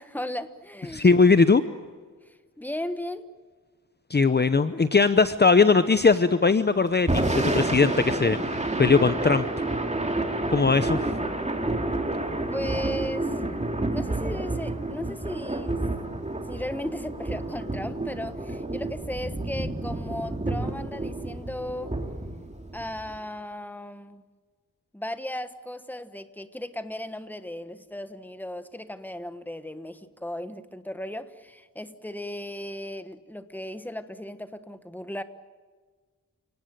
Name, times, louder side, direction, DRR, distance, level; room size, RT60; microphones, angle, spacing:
voice 1, 0.0-1.1 2.3-3.3 12.5-13.3 13.9-15.9 16.5-22.0 22.7-24.2 24.9-35.2, left 1 dB, 5° left, 10 dB, 1.3 m, -36 dB
voice 2, 0.9-1.6 4.1-9.7 10.5-11.0, left 4 dB, 30° left, 11 dB, 0.8 m, -20 dB
Thunder / Rain, 6.9-23.2, right 2 dB, 20° right, 2.7 m, -29 dB
29.5 x 18.5 x 9.2 m, 1.5 s
wide cardioid pair, 110°, 33 cm